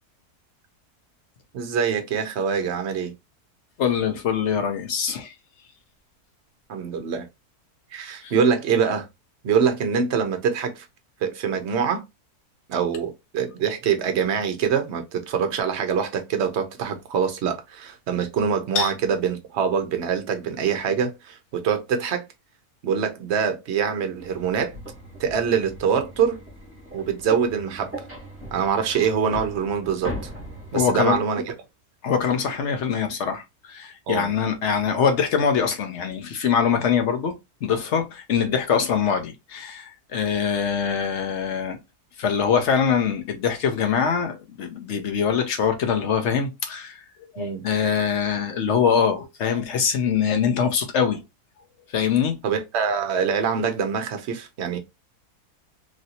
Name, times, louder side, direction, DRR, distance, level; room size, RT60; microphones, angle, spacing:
voice 1, 1.5-3.1 6.7-7.3 7.9-9.1 9.4-10.9 11.2-12.0 12.7-22.2 22.8-24.7 25.2-26.4 26.9-27.9 28.5-30.1 30.7-31.5 34.1-34.3 47.4-47.6 52.4-54.8, right 7 dB, 60° right, 0.8 m, -24 dB
voice 2, 3.8-5.3 8.2-8.3 18.7-18.9 30.7-31.2 32.0-37.4 37.6-41.8 42.2-47.0 47.3-51.2 51.9-52.4, left 7 dB, 60° left, 0.8 m, -23 dB
sound 1, 24.2-31.2, right 1 dB, 10° right, 0.9 m, -39 dB
3.1 x 2.6 x 2.7 m
omnidirectional pair, 1.7 m